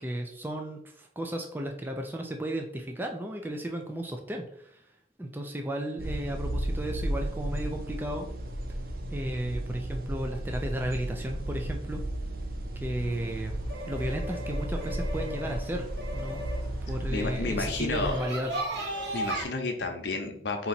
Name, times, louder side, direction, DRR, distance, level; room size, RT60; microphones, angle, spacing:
voice 1, 0.0-4.8 5.2-8.3 9.1-12.0 12.8-13.6 13.9-15.9 16.1-16.5 16.9-18.5, right 1 dB, 10° right, 2 dB, 0.4 m, -34 dB
sound 1, 6.0-18.2, right 1 dB, 55° right, 0.6 m, -34 dB
sound 2, 13.0-19.4, equal, 75° right, 1.6 m, -37 dB
voice 2, 17.1-18.1 19.1-20.7, left 3 dB, 75° left, 4 dB, 0.8 m, -31 dB
4.0 x 2.9 x 4.3 m, 0.68 s
head